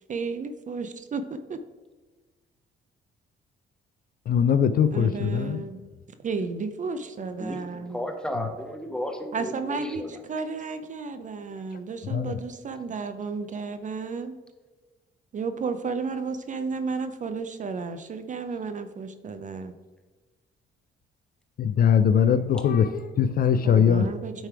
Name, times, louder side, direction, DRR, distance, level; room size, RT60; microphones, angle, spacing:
voice 1, 0.1-1.6 4.9-5.8 6.2-8.0 9.3-14.3 15.3-19.7 23.6-24.5, right 4 dB, 40° right, 9 dB, 0.5 m, -33 dB
voice 2, 4.3-5.6 12.1-12.4 21.6-24.1, left 7 dB, 50° left, 12 dB, 0.4 m, -21 dB
voice 3, 7.4-10.2, equal, 5° left, 5 dB, 1.0 m, -34 dB
9.0 x 3.3 x 4.7 m, 1.3 s
cardioid pair, 90°, 20 cm